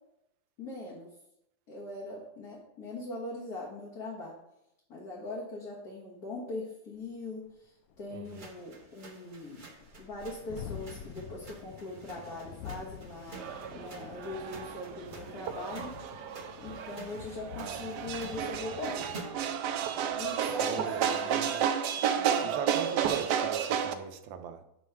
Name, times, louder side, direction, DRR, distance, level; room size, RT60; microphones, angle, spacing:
voice 1, 0.6-1.1 1.7-4.4 4.9-9.6 10.0-15.9 16.6-19.0 20.1-21.8 22.1-22.5, left 2 dB, 55° left, -5 dB, 1.8 m, -41 dB
Thunderstorm, 7.0-7.1 7.5-7.6 7.9-21.5, left 8 dB, 75° left, 0.8 m, -48 dB
voice 2, 8.1-8.5 17.6-17.9 20.6-21.7 22.4-24.6, right 7 dB, 90° right, 8 dB, 1.4 m, -40 dB
sound 1, 8.2-19.6, right 3 dB, 35° right, 0.8 m, -50 dB
sound 2, 13.3-23.9, right 8 dB, 75° right, 1.1 m, -32 dB
8.6 x 3.2 x 5.7 m, 0.83 s
omnidirectional pair, 2.0 m